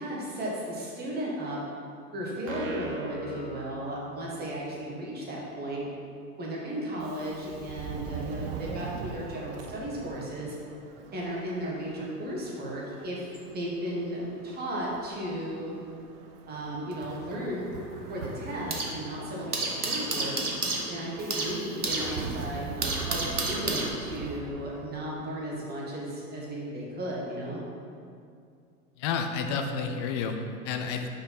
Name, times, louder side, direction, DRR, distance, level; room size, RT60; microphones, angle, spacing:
voice 1, 0.0-1.6 2.1-5.8 6.4-10.5 11.1-15.7 16.5-17.7 18.1-20.3 20.9-27.6, right 1 dB, 20° right, -4 dB, 1.8 m, -35 dB
sound 1, 2.5-4.4, right 1 dB, 60° right, 1.5 m, -40 dB
Subway metro underground, 7.0-25.3, right 6 dB, 40° right, 0.6 m, -43 dB
sound 2, 16.9-19.0 19.3-24.4, right 2 dB, 80° right, 1.1 m, -32 dB
voice 2, 29.0-31.1, left 5 dB, 20° left, 5 dB, 0.3 m, -30 dB
5.9 x 5.1 x 5.7 m, 2.4 s
figure-of-eight pair, 90°, 44 cm